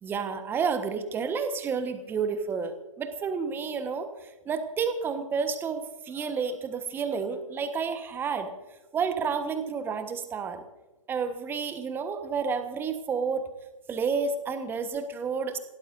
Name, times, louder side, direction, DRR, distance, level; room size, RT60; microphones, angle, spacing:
voice 1, 0.0-4.1 4.4-8.5 8.9-10.6 11.1-13.4 13.9-15.6, right 5 dB, 10° right, 8 dB, 1.3 m, -30 dB
27.0 x 17.0 x 2.7 m, 1.1 s
figure-of-eight pair, 130°, 18 cm